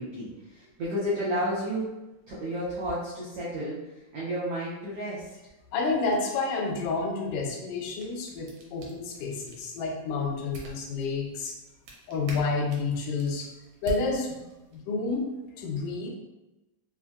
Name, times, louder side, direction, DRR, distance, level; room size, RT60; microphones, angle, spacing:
voice 1, 0.0-1.9 2.3-5.5, equal, 90° right, -9 dB, 1.3 m, -32 dB
voice 2, 5.7-11.6 12.1-13.5 13.8-14.4 14.7-15.3 15.6-16.1, left 4 dB, 80° left, 0 dB, 2.1 m, -29 dB
sound 1, 7.7-14.8, right 5 dB, 75° right, 1.7 m, -45 dB
5.7 x 2.1 x 2.3 m, 1.0 s
omnidirectional pair, 3.8 m